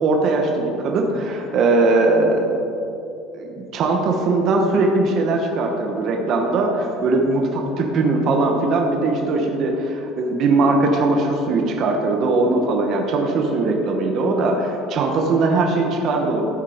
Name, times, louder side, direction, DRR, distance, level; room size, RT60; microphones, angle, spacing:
voice 1, 0.0-2.5 3.3-16.4, right 3 dB, 35° right, 2 dB, 1.0 m, -20 dB
13.0 x 7.3 x 5.0 m, 2.8 s
cardioid pair, 180°, 0 cm